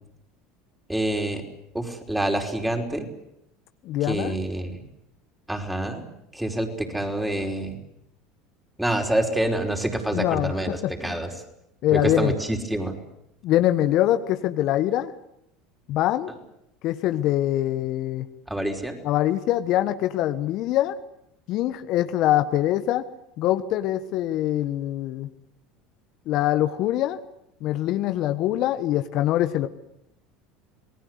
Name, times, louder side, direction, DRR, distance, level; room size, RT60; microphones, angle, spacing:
voice 1, 0.9-1.4 1.7-3.1 4.0-4.8 5.5-6.1 6.3-7.8 8.8-11.3 11.9-13.0 18.5-19.0, right 1 dB, 5° right, 3 dB, 5.2 m, -27 dB
voice 2, 3.8-4.3 10.1-11.2 11.8-12.3 13.4-15.1 15.9-16.3 16.8-18.3 19.0-21.0 21.5-23.0 23.4-25.3 26.3-27.2 27.6-29.7, left 13 dB, 55° left, 10 dB, 1.3 m, -23 dB
28.0 x 19.5 x 8.2 m, 0.81 s
hypercardioid pair, 75°, 0 cm